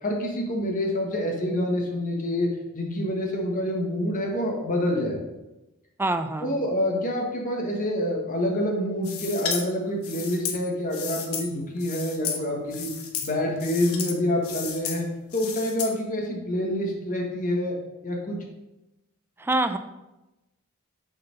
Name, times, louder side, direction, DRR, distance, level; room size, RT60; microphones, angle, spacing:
voice 1, 0.0-2.5 2.7-5.2 6.4-12.9 13.2-15.0 15.3-17.8 18.0-18.4, left 1 dB, 40° left, 0 dB, 1.5 m, -27 dB
voice 2, 6.0-6.6 19.4-19.8, right 2 dB, 10° right, 8 dB, 0.4 m, -25 dB
sound 1, 9.0-9.6 10.0-11.5 11.8-12.4 12.7-13.3 13.6-14.1 14.4-15.0 15.3-15.9, left 7 dB, 75° left, 1.1 m, -33 dB
6.6 x 4.3 x 5.3 m, 0.99 s
head